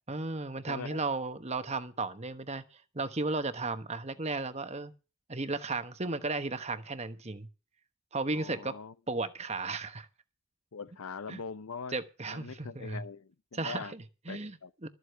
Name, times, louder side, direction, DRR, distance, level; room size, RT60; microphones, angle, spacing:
voice 1, 0.1-4.9 5.3-7.5 8.1-8.8 9.1-10.1 11.3-11.4 11.9-13.0 13.5-14.9, right 3 dB, 30° right, 1.1 m, -35 dB
voice 2, 0.7-1.0 8.3-8.9 10.7-12.0 12.3-13.9 14.3-14.7, left 5 dB, 80° left, 0.7 m, -42 dB
13.5 x 8.1 x 6.9 m
head